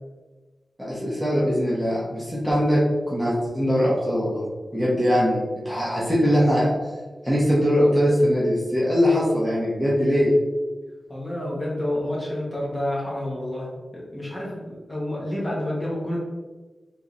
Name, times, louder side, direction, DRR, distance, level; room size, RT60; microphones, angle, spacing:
voice 1, 0.8-4.4 4.7-5.4 5.6-6.9 7.2-10.3, equal, ahead, -8 dB, 1.2 m, -21 dB
voice 2, 11.1-16.2, left 1 dB, 20° left, -5 dB, 1.5 m, -29 dB
3.7 x 3.1 x 4.0 m, 1.3 s
wide cardioid pair, 110°, 0 cm